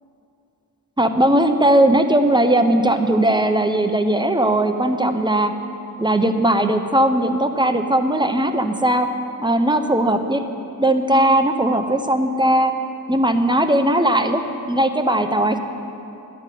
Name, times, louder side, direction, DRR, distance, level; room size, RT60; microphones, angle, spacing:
voice 1, 1.0-5.5 6.0-9.1 9.4-10.5 10.8-12.7 13.1-14.4 14.7-15.6, right 1 dB, 15° right, 7 dB, 0.7 m, -18 dB
12.0 x 5.6 x 9.1 m, 2.8 s
wide cardioid pair, 80°, 34 cm